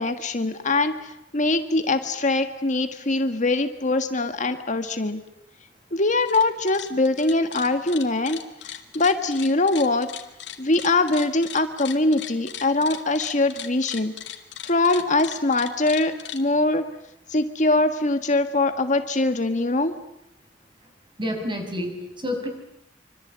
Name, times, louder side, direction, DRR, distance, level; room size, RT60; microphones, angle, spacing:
voice 1, 0.0-5.2 5.9-10.1 10.6-14.1 14.6-16.8 17.3-20.0, left 2 dB, 45° left, 8 dB, 1.6 m, -23 dB
sound 1, 6.1-6.4 6.7-16.4, left 11 dB, 75° left, 2.8 m, -37 dB
voice 2, 21.2-22.5, left 1 dB, 25° right, 5 dB, 6.0 m, -29 dB
26.0 x 25.5 x 8.7 m, 0.79 s
head